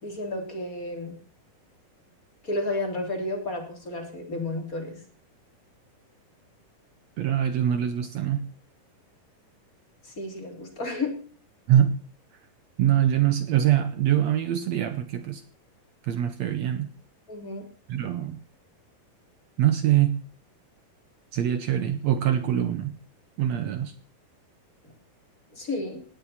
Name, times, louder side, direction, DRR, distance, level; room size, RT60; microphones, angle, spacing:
voice 1, 0.0-1.2 2.4-5.0 10.0-11.1 17.3-17.7 25.5-26.0, left 2 dB, 25° left, 3 dB, 3.4 m, -32 dB
voice 2, 7.2-8.5 11.7-12.0 12.8-15.4 16.0-16.9 17.9-18.4 19.6-20.2 21.3-23.0 23.4-23.9, right 11 dB, 70° right, 11 dB, 1.8 m, -24 dB
18.5 x 16.5 x 4.3 m, 0.42 s
omnidirectional pair, 4.0 m